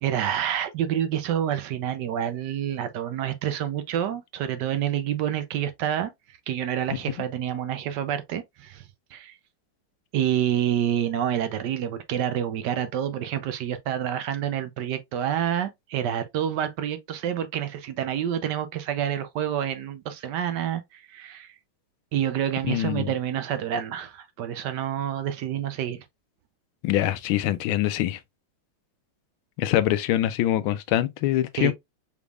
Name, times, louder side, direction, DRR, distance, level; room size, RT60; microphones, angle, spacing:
voice 1, 0.0-8.8 9.1-9.3 10.1-21.5 22.1-26.0 31.6-31.7, right 10 dB, 70° right, 1.1 m, -28 dB
voice 2, 22.7-23.1 26.8-28.2 29.6-31.7, left 13 dB, 80° left, 1.4 m, -24 dB
5.1 x 3.4 x 2.3 m
omnidirectional pair, 2.2 m